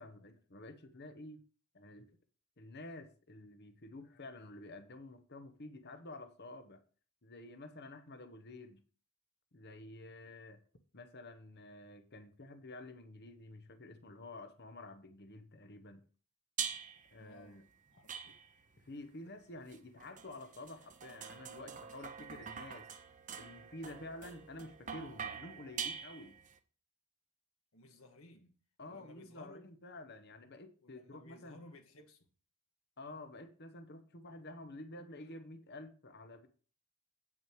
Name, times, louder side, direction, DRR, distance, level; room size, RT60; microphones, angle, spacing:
voice 1, 0.0-1.4 1.7-2.1 2.6-6.8 7.2-8.8 9.5-10.6 10.9-16.0 17.1-17.6 18.2-18.3 18.8-22.9 23.4-26.4 28.8-31.6 33.0-36.5, left 2 dB, 50° left, 1.2 m, -50 dB
sound 1, 16.6-17.1 18.1-18.8 19.7-26.5, right 7 dB, 35° right, 0.8 m, -44 dB
voice 2, 17.2-17.6 17.9-18.1 27.7-28.6 28.9-29.7 30.8-32.3, left 2 dB, 65° left, 1.8 m, -57 dB
8.9 x 6.3 x 4.7 m
head